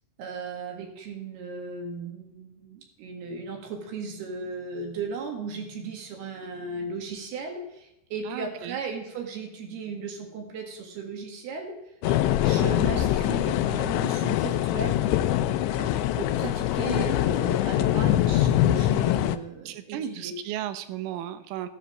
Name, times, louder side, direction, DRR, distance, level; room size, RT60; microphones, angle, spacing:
voice 1, 0.2-11.7 12.4-15.0 16.2-20.3, right 4 dB, 65° right, 2 dB, 3.5 m, -36 dB
voice 2, 8.3-8.8 12.1-12.2 15.8-16.0 19.7-21.7, right 11 dB, 85° right, 11 dB, 3.4 m, -35 dB
sound 1, 12.0-19.4, left 13 dB, 80° left, 2.9 m, -24 dB
14.0 x 9.9 x 6.4 m, 0.85 s
omnidirectional pair, 5.6 m